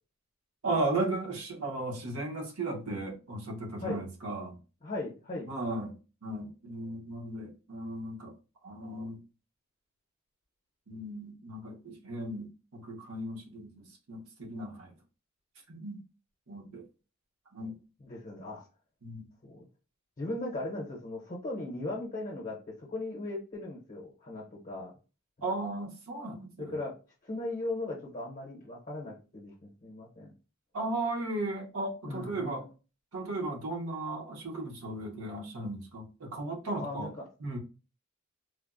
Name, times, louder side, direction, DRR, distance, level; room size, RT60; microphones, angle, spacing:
voice 1, 0.6-4.6 5.5-5.9 6.2-8.3 8.6-9.2 10.9-14.9 15.7-16.0 16.5-16.8 17.5-17.8 19.0-19.3 25.4-26.7 30.7-32.6 33.1-37.1 37.4-37.6, right 2 dB, 75° right, 0.8 m, -36 dB
voice 2, 4.8-5.5 18.0-18.6 19.4-19.7 20.2-24.9 26.6-26.9 27.2-29.5 29.8-30.3 32.0-32.6 36.8-37.3, left 2 dB, 35° left, 0.6 m, -38 dB
3.2 x 2.0 x 2.4 m
head